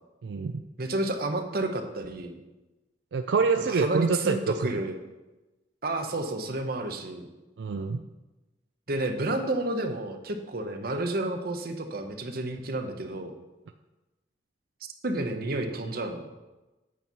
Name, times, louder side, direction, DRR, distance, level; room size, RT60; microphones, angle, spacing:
voice 1, 0.2-0.6 3.1-4.4 7.6-8.0, right 4 dB, 85° right, 7 dB, 0.4 m, -26 dB
voice 2, 0.8-2.4 3.6-4.9 5.8-7.3 8.9-13.3 15.0-16.3, right 2 dB, 55° right, 5 dB, 0.9 m, -30 dB
8.7 x 4.4 x 6.9 m, 1.1 s
head